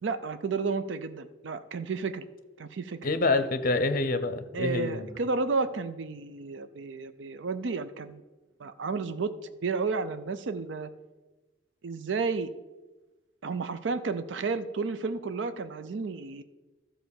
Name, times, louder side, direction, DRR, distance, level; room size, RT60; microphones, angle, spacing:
voice 1, 0.0-2.2 2.6-3.0 4.5-8.2 8.6-9.3 9.6-10.9 11.8-12.5 13.4-16.4, right 4 dB, 65° right, 11 dB, 0.5 m, -32 dB
voice 2, 3.0-5.1, left 2 dB, 45° left, 11 dB, 0.7 m, -27 dB
12.5 x 4.4 x 7.0 m, 1.2 s
head